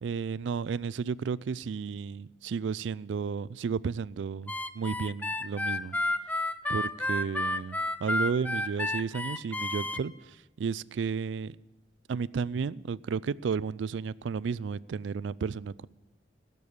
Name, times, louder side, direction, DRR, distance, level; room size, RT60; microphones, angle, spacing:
voice 1, 0.0-6.0 6.7-11.6 12.1-15.9, right 6 dB, 75° right, 21 dB, 0.4 m, -33 dB
Harmonica, 4.5-10.0, left 2 dB, 10° left, 0.4 m, -31 dB
17.5 x 6.9 x 8.6 m, 1.1 s
head